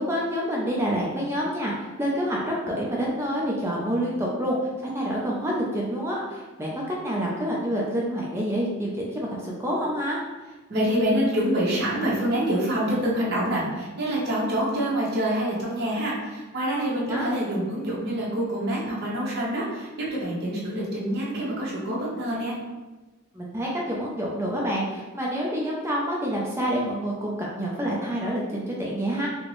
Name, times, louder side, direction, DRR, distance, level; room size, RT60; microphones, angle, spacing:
voice 1, 0.0-4.6 4.8-10.2 17.1-17.3 23.3-29.3, equal, 10° right, -4 dB, 0.4 m, -27 dB
voice 2, 10.7-22.6, right 1 dB, 50° right, -6 dB, 1.0 m, -26 dB
4.2 x 2.0 x 3.0 m, 1.2 s
head